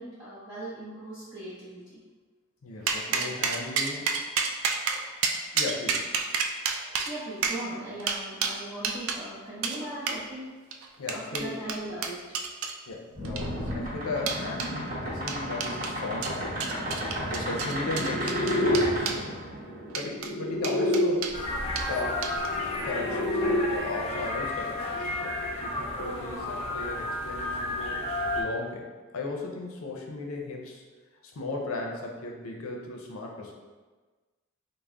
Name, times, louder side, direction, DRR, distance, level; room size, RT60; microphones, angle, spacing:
voice 1, 0.0-2.0 3.1-3.6 7.1-10.4 11.1-12.3, right 1 dB, 20° right, -11 dB, 0.6 m, -39 dB
voice 2, 2.6-4.1 4.9-5.0 5.5-6.1 11.0-11.6 12.9-16.6 17.3-19.4 20.0-21.3 21.9-22.3 22.8-24.9 25.2-28.1 28.3-28.9 29.1-30.8 31.2-33.5, left 2 dB, 75° left, 0 dB, 0.5 m, -36 dB
sound 1, 2.9-9.2 9.6-9.8 10.1-10.2 10.7-12.8 13.2-13.7 14.3-14.7 15.3-16.0 16.2-19.2 19.9-20.3 20.6-21.4 21.8-21.9 22.2-22.6, right 5 dB, 75° right, 0.3 m, -30 dB
sound 2, 13.2-21.1 22.3-23.6, left 1 dB, 40° right, 1.1 m, -30 dB
sound 3, 21.3-28.4, left 2 dB, 30° left, 0.5 m, -32 dB
3.4 x 2.1 x 3.6 m, 1.3 s
head